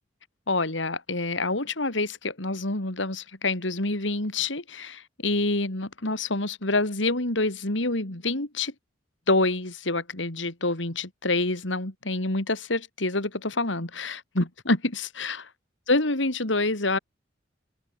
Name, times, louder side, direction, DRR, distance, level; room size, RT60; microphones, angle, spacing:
voice 1, 0.5-8.7 9.3-15.5 15.9-17.0, left 2 dB, 75° left, 3.5 m, -27 dB
open air
head